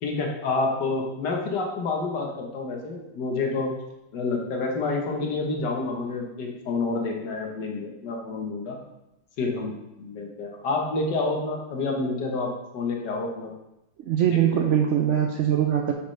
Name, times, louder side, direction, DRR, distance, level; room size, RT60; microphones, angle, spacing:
voice 1, 0.0-3.7 4.1-8.8 9.4-13.5 14.3-14.6, left 3 dB, 70° left, 1 dB, 1.8 m, -28 dB
voice 2, 14.1-15.9, right 9 dB, 75° right, 3 dB, 0.6 m, -22 dB
8.1 x 6.7 x 3.2 m, 0.91 s
omnidirectional pair, 1.9 m